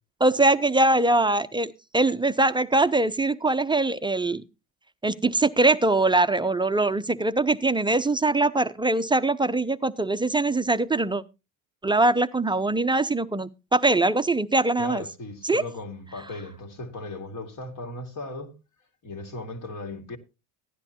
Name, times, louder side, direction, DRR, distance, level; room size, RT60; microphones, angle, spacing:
voice 1, 0.2-4.4 5.0-11.2 11.8-15.0 15.4-15.6, right 2 dB, 10° right, 0.5 m, -22 dB
voice 2, 14.8-18.6 19.0-20.2, left 2 dB, 45° left, 2.5 m, -37 dB
16.0 x 10.5 x 2.9 m
supercardioid pair, 85°, 44 cm